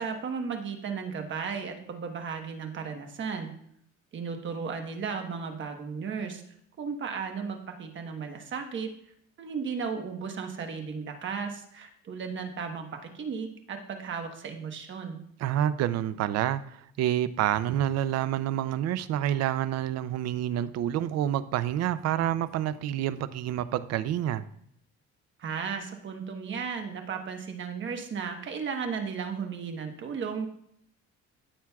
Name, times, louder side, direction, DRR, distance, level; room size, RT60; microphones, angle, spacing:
voice 1, 0.0-3.5 4.1-6.4 6.8-8.9 9.4-15.2 25.4-30.5, right 6 dB, 40° right, 4 dB, 1.2 m, -35 dB
voice 2, 15.4-16.6 17.0-24.4, right 11 dB, 60° right, 14 dB, 0.5 m, -28 dB
14.0 x 7.3 x 2.3 m, 0.69 s
cardioid pair, 145°, 29 cm